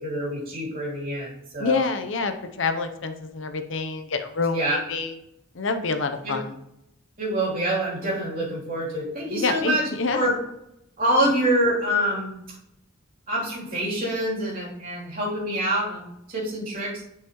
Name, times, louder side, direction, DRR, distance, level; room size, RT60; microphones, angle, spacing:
voice 1, 0.0-1.9 4.5-4.8 6.2-6.4 7.2-10.4 11.0-12.3 13.3-17.0, right 1 dB, 45° right, -6 dB, 3.1 m, -26 dB
voice 2, 1.6-5.1 5.5-6.6 9.3-10.3, left 4 dB, 65° left, 8 dB, 0.7 m, -27 dB
10.5 x 5.7 x 3.0 m, 0.83 s
head